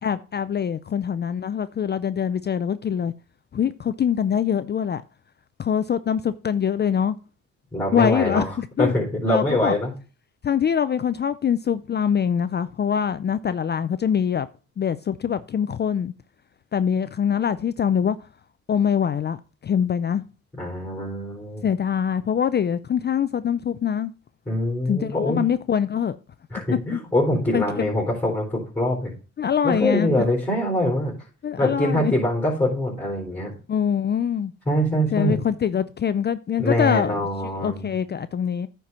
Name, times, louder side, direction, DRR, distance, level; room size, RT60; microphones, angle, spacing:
voice 1, 0.0-3.1 3.5-5.0 5.6-7.2 7.9-8.9 9.3-9.7 10.4-14.5 14.8-16.1 16.7-18.2 18.7-20.2 21.6-24.1 24.9-26.2 26.9-27.0 27.5-27.9 29.4-30.2 31.4-32.1 33.7-34.5 35.1-37.2 37.6-38.7, left 8 dB, 35° left, 0.4 m, -24 dB
voice 2, 7.7-8.5 8.8-9.9 20.6-21.7 24.5-25.4 26.5-29.1 29.6-31.1 31.6-33.5 34.7-35.4 36.6-37.9, left 1 dB, 5° left, 4.1 m, -24 dB
9.3 x 4.6 x 5.5 m
cardioid pair, 90°, 30 cm